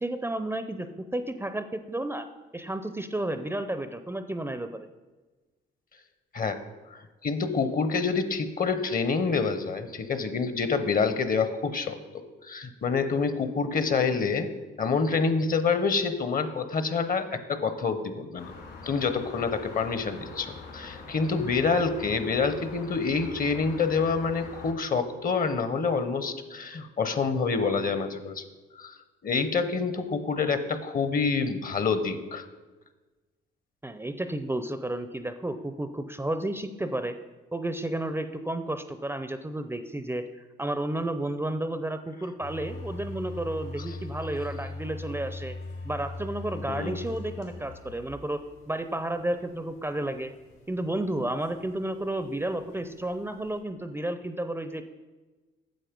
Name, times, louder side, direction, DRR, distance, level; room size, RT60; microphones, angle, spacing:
voice 1, 0.0-2.3 2.5-4.8 33.8-37.2 37.5-40.2 40.6-45.6 45.8-48.4 48.7-50.3 50.7-54.8, right 1 dB, 10° right, 10 dB, 0.5 m, -32 dB
voice 2, 7.2-14.5 14.8-18.5 18.8-28.4 28.8-28.9 29.2-32.5 46.7-47.0, left 5 dB, 45° left, 11 dB, 0.9 m, -27 dB
sound 1, 18.4-24.7, left 3 dB, 65° left, 2.9 m, -43 dB
sound 2, 42.4-53.6, left 2 dB, 90° left, 3.2 m, -42 dB
9.3 x 7.2 x 5.2 m, 1.3 s
cardioid pair, 90°, 20 cm